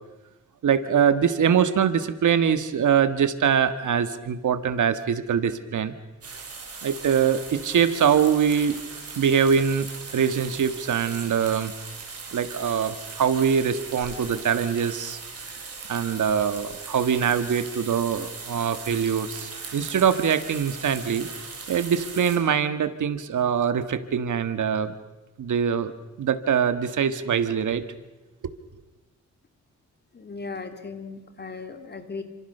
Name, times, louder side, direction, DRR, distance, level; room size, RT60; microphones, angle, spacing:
voice 1, 0.6-5.9 6.8-8.8 9.2-11.7 12.3-15.2 15.9-21.3 21.7-24.9 25.4-25.9 26.2-27.9, right 7 dB, 85° right, 11 dB, 1.6 m, -23 dB
sound 1, 6.2-22.4, right 4 dB, 55° right, 6.3 m, -39 dB
voice 2, 30.1-32.2, left 4 dB, 35° left, 7 dB, 2.7 m, -37 dB
29.0 x 26.0 x 6.7 m, 1.1 s
wide cardioid pair, 160°, 30 cm